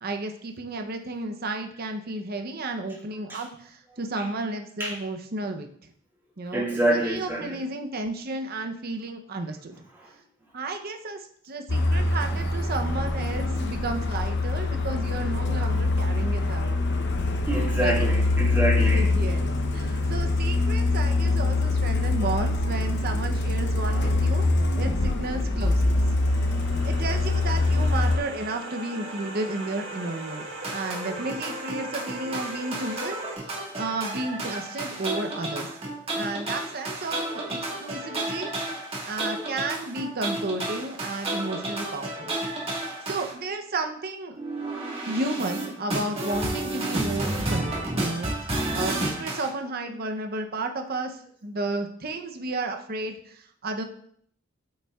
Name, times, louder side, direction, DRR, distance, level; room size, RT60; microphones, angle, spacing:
voice 1, 0.0-5.9 6.4-9.8 10.5-16.9 17.8-18.1 18.8-26.0 26.8-35.7 36.1-42.3 43.1-44.4 45.1-53.8, right 2 dB, 50° right, 5 dB, 0.7 m, -33 dB
voice 2, 6.5-7.6 17.5-19.1 19.8-20.0, right 1 dB, 10° right, -6 dB, 2.1 m, -26 dB
Truck, 11.7-28.2, left 2 dB, 60° left, 0.7 m, -24 dB
sound 1, 25.0-33.4, right 1 dB, 70° right, 1.4 m, -39 dB
sound 2, 30.6-43.3 44.3-49.5, right 2 dB, 30° right, 1.5 m, -31 dB
8.8 x 5.5 x 2.4 m, 0.62 s
head